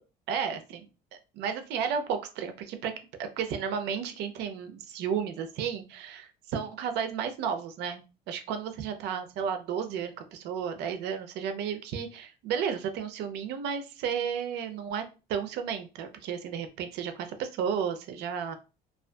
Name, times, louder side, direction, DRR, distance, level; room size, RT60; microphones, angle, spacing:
voice 1, 0.3-2.9 3.2-15.0 15.3-18.5, right 7 dB, 80° right, 7 dB, 0.5 m, -33 dB
2.5 x 2.3 x 2.2 m, 0.30 s
cardioid pair, 110°, 17 cm